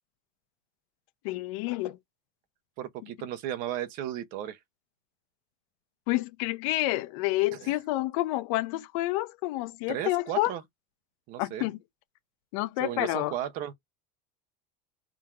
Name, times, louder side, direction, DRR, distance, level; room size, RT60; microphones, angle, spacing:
voice 1, 1.2-2.0 6.1-10.5 11.4-11.8 12.5-13.3, left 17 dB, 65° left, 0.8 m, -29 dB
voice 2, 2.8-4.6 7.6-7.7 9.9-10.6 11.3-11.7 12.8-13.7, right 11 dB, 50° right, 0.8 m, -35 dB
3.8 x 2.9 x 4.8 m
supercardioid pair, 155°, 18 cm